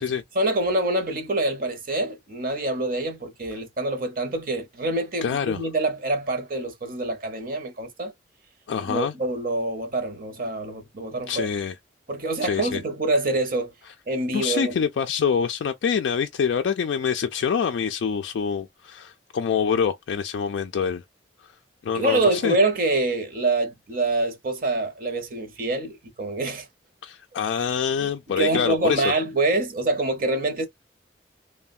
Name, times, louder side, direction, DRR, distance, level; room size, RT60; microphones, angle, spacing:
voice 1, 0.3-8.1 8.9-11.5 12.1-13.7 14.1-14.7 21.9-26.7 28.4-30.7, right 2 dB, 45° right, 0.7 m, -25 dB
voice 2, 5.2-5.6 8.7-9.1 11.3-11.8 12.4-12.8 14.3-21.0 21.4-21.6 21.8-22.6 27.0-29.1, left 6 dB, 70° left, 0.3 m, -25 dB
3.1 x 2.1 x 2.4 m
head